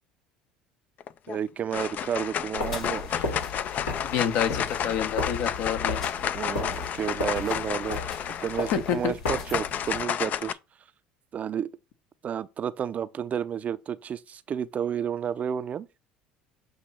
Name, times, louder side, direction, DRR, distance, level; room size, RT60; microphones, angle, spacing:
sound 1, 1.0-1.4 1.7-10.5, left 9 dB, 45° left, 0.5 m, -31 dB
voice 1, 1.3-3.3 6.3-10.6 11.3-11.7 12.2-15.9, right 8 dB, 40° right, 0.5 m, -31 dB
sound 2, 2.6-10.0, left 3 dB, 90° left, 2.8 m, -35 dB
voice 2, 4.0-6.0 8.7-9.1, left 8 dB, 65° left, 1.2 m, -28 dB
7.9 x 3.0 x 5.7 m
hypercardioid pair, 70°, 4 cm